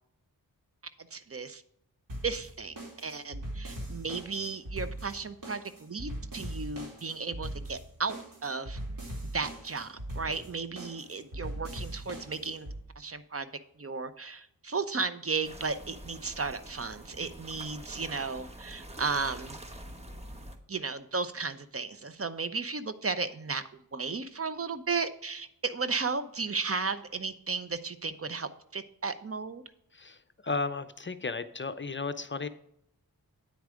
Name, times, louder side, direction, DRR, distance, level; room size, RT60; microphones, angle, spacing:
voice 1, 1.1-1.6 2.2-8.8 9.3-12.7 13.0-13.5 13.8-19.6 20.7-23.6 23.9-29.6, right 4 dB, 40° right, 12 dB, 0.7 m, -34 dB
sound 1, 2.1-12.8, right 1 dB, 65° right, 2.7 m, -40 dB
sound 2, 15.4-20.6, right 1 dB, 15° right, 1.3 m, -46 dB
voice 2, 29.9-32.5, left 4 dB, 35° left, 12 dB, 0.6 m, -34 dB
9.3 x 4.7 x 6.2 m, 0.75 s
cardioid pair, 55°, 36 cm